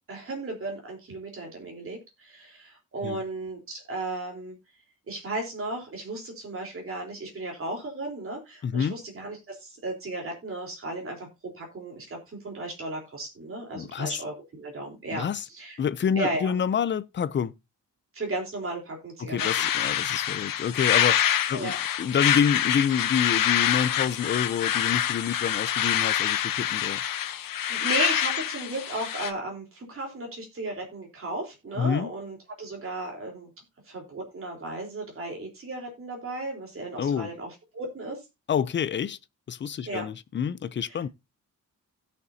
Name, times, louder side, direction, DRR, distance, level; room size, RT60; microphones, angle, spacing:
voice 1, 0.1-4.6 5.1-11.3 11.5-12.2 12.4-15.3 15.5-15.8 16.2-16.5 18.1-19.5 21.5-21.8 27.6-33.5 33.9-38.2 39.9-40.1 40.9-41.0, right 2 dB, 40° right, 3.7 m, -35 dB
voice 2, 8.6-9.0 13.7-14.2 15.1-15.5 15.8-17.5 19.2-21.2 21.5-27.0 31.8-32.1 37.0-37.3 38.5-39.2 39.5-41.1, left 7 dB, 35° left, 0.5 m, -27 dB
sound 1, 19.4-29.3, left 10 dB, 80° left, 0.9 m, -26 dB
17.0 x 6.7 x 2.7 m
wide cardioid pair, 175°, 33 cm